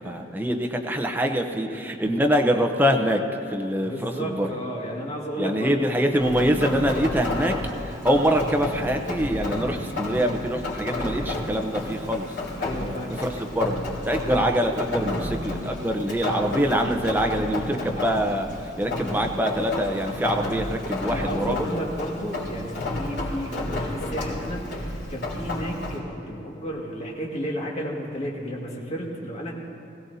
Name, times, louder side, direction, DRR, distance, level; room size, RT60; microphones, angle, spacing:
voice 1, 0.0-4.5 5.4-7.6 7.8-12.3 13.1-13.8 14.0-21.6, equal, 10° right, 3 dB, 0.8 m, -24 dB
voice 2, 3.8-5.9 12.6-13.2 18.0-18.1 21.0-29.5, equal, 40° left, -3 dB, 2.0 m, -32 dB
Rain, 6.2-26.0, left 1 dB, 85° left, 3.1 m, -31 dB
20.5 x 16.5 x 2.8 m, 2.6 s
head